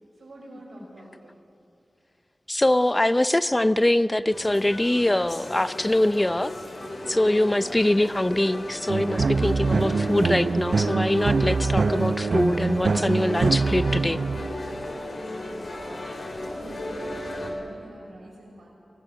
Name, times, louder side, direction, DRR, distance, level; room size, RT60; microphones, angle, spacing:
voice 1, 0.2-1.4 16.3-18.7, right 1 dB, 90° right, -3 dB, 6.0 m, -45 dB
voice 2, 2.5-6.5 7.1-14.2, left 1 dB, 20° left, 13 dB, 0.6 m, -23 dB
sound 1, 4.3-17.5, left 1 dB, 75° left, 4.1 m, -35 dB
sound 2, 8.9-14.8, right 4 dB, 70° right, 0.4 m, -24 dB
24.5 x 17.0 x 6.6 m, 2.6 s
wide cardioid pair, 80°, 0 cm